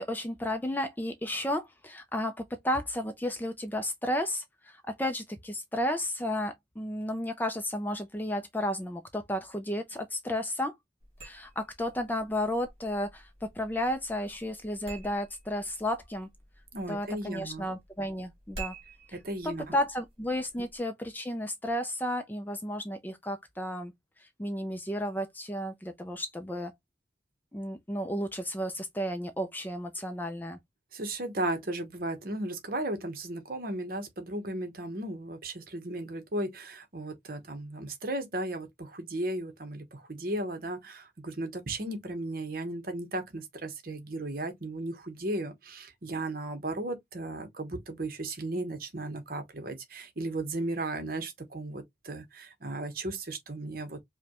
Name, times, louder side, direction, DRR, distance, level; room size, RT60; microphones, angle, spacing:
voice 1, 0.0-10.7 11.2-16.3 16.9-18.7 19.1-19.2 19.7-23.9 24.2-26.7 27.5-30.6, left 1 dB, 10° left, 0.4 m, -33 dB
sound 1, 11.0-20.8, right 3 dB, 30° right, 2.2 m, -49 dB
voice 2, 16.7-17.6 19.1-19.8 30.9-54.0, right 1 dB, 50° right, 0.9 m, -35 dB
5.0 x 2.2 x 2.9 m
head